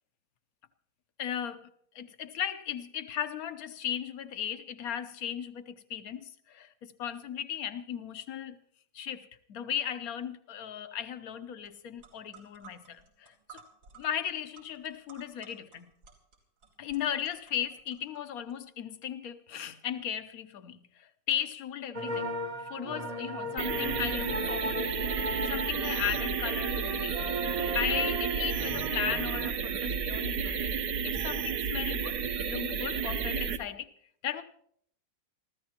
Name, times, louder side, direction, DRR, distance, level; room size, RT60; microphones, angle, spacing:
voice 1, 1.2-1.6 1.9-8.6 8.9-13.6 14.0-15.9 16.8-27.2 27.7-30.7 31.0-32.2 32.4-33.9 34.2-34.4, left 9 dB, 60° left, 1.1 m, -36 dB
sound 1, 11.6-11.7 12.0-18.5, right 6 dB, 90° right, 4.1 m, -56 dB
sound 2, 21.9-29.5, right 1 dB, 30° right, 0.8 m, -36 dB
sound 3, 23.6-33.6, right 6 dB, 65° right, 1.4 m, -32 dB
27.0 x 15.0 x 2.9 m
omnidirectional pair, 2.0 m